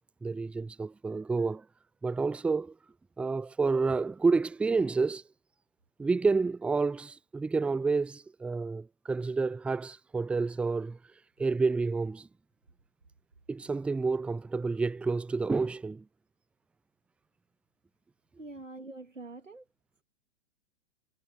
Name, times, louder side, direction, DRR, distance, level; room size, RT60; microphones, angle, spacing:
voice 1, 0.2-1.6 2.0-2.7 3.2-5.2 6.0-11.0 11.4-12.3 13.5-16.0, right 4 dB, 5° right, 0.5 m, -29 dB
voice 2, 18.4-19.6, right 2 dB, 85° right, 2.4 m, -44 dB
figure-of-eight pair, 105°, 37 cm